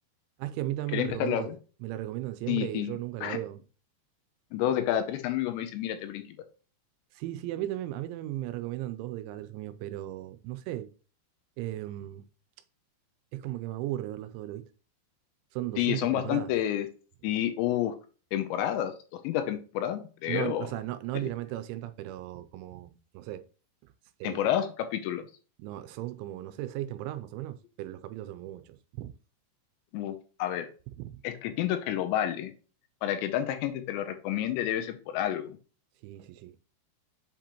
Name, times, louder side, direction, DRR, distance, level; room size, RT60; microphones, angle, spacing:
voice 1, 0.4-1.5 1.8-3.6 7.2-10.9 11.6-12.2 13.3-14.7 15.5-16.5 20.3-23.5 24.2-24.5 25.6-29.1 36.0-36.5, right 14 dB, 85° right, 2.9 m, -36 dB
voice 2, 0.9-1.6 2.5-3.4 4.5-6.2 15.8-16.9 17.2-17.9 18.3-20.7 24.2-25.2 29.9-30.7 31.2-32.5 33.0-35.5, left 11 dB, 80° left, 2.8 m, -29 dB
7.4 x 5.0 x 2.9 m
omnidirectional pair, 5.4 m